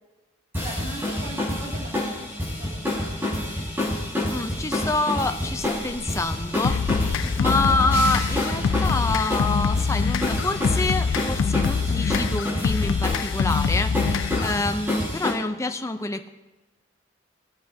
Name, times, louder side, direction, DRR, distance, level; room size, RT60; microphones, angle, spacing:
sound 1, 0.5-15.3, left 1 dB, 10° right, 4.8 m, -28 dB
voice 1, 0.6-3.6, right 1 dB, 45° right, -6 dB, 2.2 m, -41 dB
voice 2, 4.3-16.3, left 2 dB, 15° left, 8 dB, 0.6 m, -27 dB
sound 2, 5.4-7.2 7.6-8.9 9.4-10.6, left 1 dB, 50° left, 2.2 m, -45 dB
sound 3, 6.6-14.6, left 5 dB, 90° left, 0.4 m, -25 dB
23.0 x 8.6 x 2.8 m, 1.1 s
head